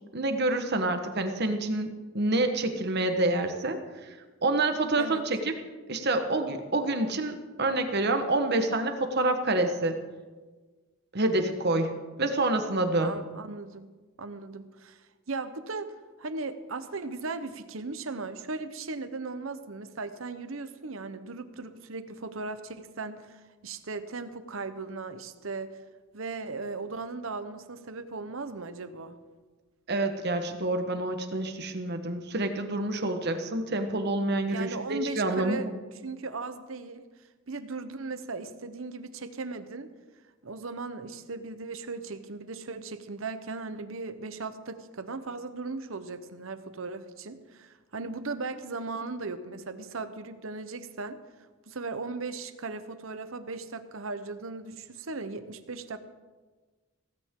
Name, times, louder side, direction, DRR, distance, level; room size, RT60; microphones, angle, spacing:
voice 1, 0.1-4.1 4.4-5.5 5.9-10.0 11.1-13.2 29.9-35.7, right 2 dB, 50° right, 7 dB, 1.3 m, -27 dB
voice 2, 13.0-13.9 14.2-15.0 15.3-15.9 16.2-25.8 26.1-29.2 34.5-35.7 36.0-37.0 37.5-39.9 40.4-51.2 51.7-56.0, right 3 dB, 75° right, 11 dB, 1.0 m, -37 dB
16.5 x 15.0 x 3.8 m, 1.3 s
head